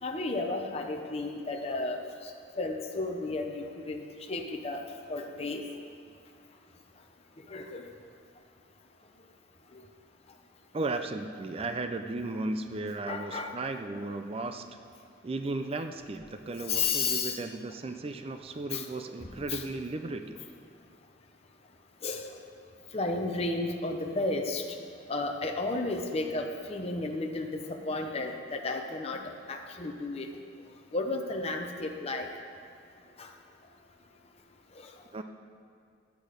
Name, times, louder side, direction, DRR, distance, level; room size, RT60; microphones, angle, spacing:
voice 1, 0.0-2.3 2.6-4.8 5.1-5.6 7.5-7.9 13.1-13.6 16.7-17.4 18.7-18.9 19.5-19.6 22.0-22.3 22.9-24.6 25.1-29.2 29.5-30.3 30.9-32.3 33.2-33.3 34.8-34.9, left 3 dB, 35° left, 2 dB, 0.7 m, -33 dB
voice 2, 10.7-14.7 15.2-20.4 35.1-35.2, right 2 dB, 30° right, 7 dB, 0.4 m, -35 dB
11.0 x 8.2 x 5.1 m, 2.3 s
head